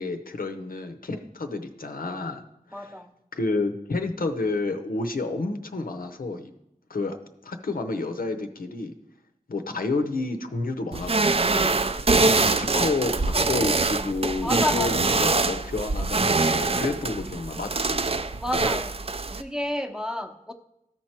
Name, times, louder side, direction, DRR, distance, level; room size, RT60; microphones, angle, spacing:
voice 1, 0.0-2.4 2.7-2.9 3.3-6.5 6.9-7.2 7.4-8.9 9.5-18.0, left 3 dB, 90° left, 6 dB, 0.7 m, -30 dB
voice 2, 2.7-3.1 14.4-15.1 18.4-19.0 19.4-20.5, left 1 dB, 5° right, 3 dB, 0.7 m, -30 dB
sound 1, 10.9-19.4, right 3 dB, 45° right, 0.4 m, -24 dB
13.5 x 4.5 x 4.4 m, 0.84 s
wide cardioid pair, 50°, 14 cm